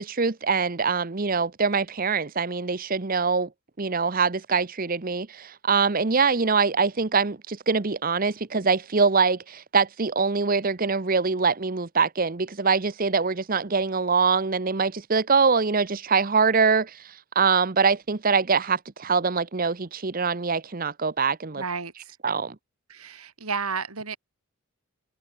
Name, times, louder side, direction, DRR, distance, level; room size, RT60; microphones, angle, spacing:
voice 1, 0.0-3.5 3.8-21.6 22.2-22.5, right 5 dB, 40° right, 0.8 m, -24 dB
voice 2, 21.6-22.1 22.9-24.2, right 5 dB, 90° right, 3.4 m, -32 dB
head